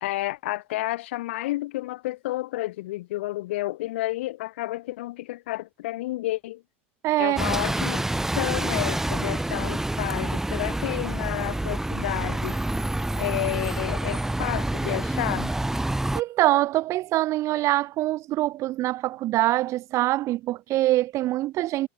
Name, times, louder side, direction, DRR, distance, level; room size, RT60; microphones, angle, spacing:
voice 1, 0.0-6.6 7.2-8.1 8.4-12.6 13.2-15.5, left 17 dB, 75° left, 2.9 m, -30 dB
voice 2, 7.0-7.6 16.1-21.9, right 16 dB, 55° right, 4.2 m, -24 dB
Bus, 7.4-16.2, right 1 dB, 5° right, 3.8 m, -27 dB
hypercardioid pair, 90°, 6 cm